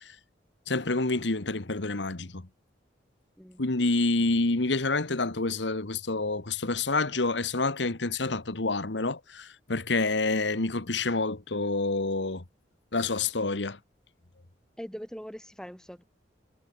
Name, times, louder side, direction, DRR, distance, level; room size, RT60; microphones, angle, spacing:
voice 1, 0.7-2.4 3.6-12.4 12.9-13.8, left 3 dB, 75° left, 1.6 m, -28 dB
voice 2, 14.8-16.0, equal, 5° left, 3.5 m, -41 dB
head